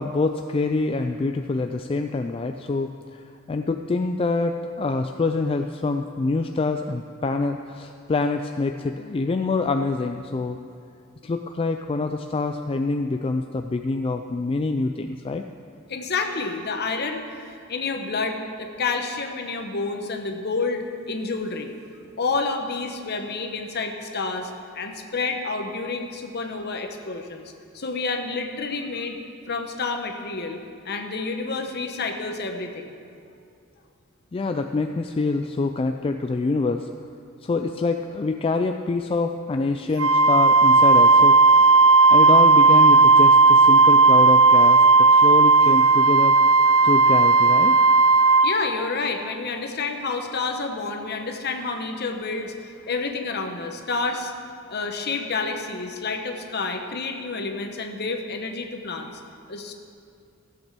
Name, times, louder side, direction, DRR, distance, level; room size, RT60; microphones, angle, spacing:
voice 1, 0.0-3.2 3.5-10.6 11.2-15.5 34.3-36.9 37.4-41.3 42.1-46.4 46.8-47.7, left 3 dB, 25° left, 6 dB, 0.3 m, -25 dB
voice 2, 15.9-21.7 22.2-27.4 27.7-29.2 29.5-30.6 30.8-32.9 48.4-54.3 54.7-59.1 59.5-59.7, left 4 dB, 50° left, 4 dB, 1.1 m, -29 dB
Wind instrument woodwind instrument, 40.0-48.5, right 3 dB, 75° right, 0.8 m, -14 dB
15.5 x 8.1 x 6.1 m, 2.4 s
head